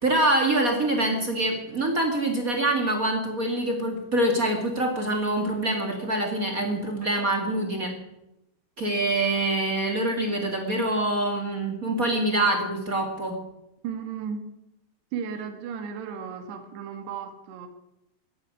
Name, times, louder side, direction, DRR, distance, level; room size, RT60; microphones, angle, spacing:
voice 1, 0.0-7.9 8.8-13.4, right 1 dB, 35° right, 2 dB, 1.4 m, -25 dB
voice 2, 13.8-14.4 15.1-17.7, right 7 dB, 75° right, 6 dB, 3.7 m, -34 dB
14.5 x 9.6 x 9.7 m, 0.87 s
omnidirectional pair, 5.0 m